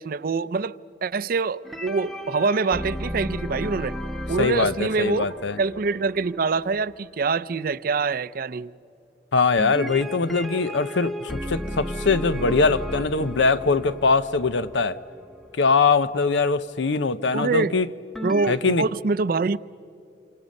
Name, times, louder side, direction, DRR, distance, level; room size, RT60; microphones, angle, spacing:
voice 1, 0.0-4.0 4.3-8.7 17.3-17.8 18.2-19.6, right 4 dB, 50° right, 0.5 m, -25 dB
sound 1, 1.6-6.9 9.6-15.5 18.2-18.6, equal, ahead, 0.8 m, -34 dB
voice 2, 4.4-5.6 9.3-15.0 15.6-17.9 18.5-18.8, left 4 dB, 85° left, 0.7 m, -22 dB
29.0 x 26.0 x 5.3 m
head